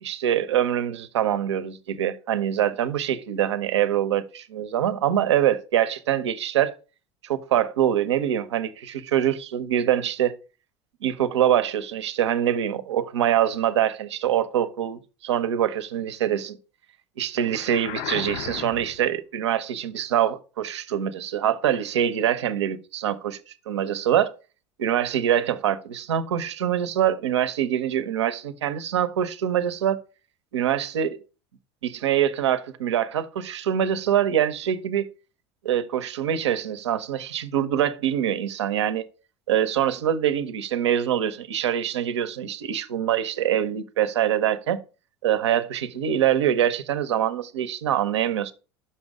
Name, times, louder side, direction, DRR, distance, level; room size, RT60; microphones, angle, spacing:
voice 1, 0.0-6.7 7.2-10.3 11.0-16.6 17.2-23.4 23.7-24.3 24.8-30.0 30.5-31.2 31.8-35.1 35.6-39.0 39.5-44.8 45.2-48.5, right 10 dB, 90° right, 0.6 m, -24 dB
sound 1, 17.5-19.1, left 11 dB, 60° left, 0.5 m, -34 dB
5.8 x 5.4 x 4.8 m
hypercardioid pair, 85°, 14 cm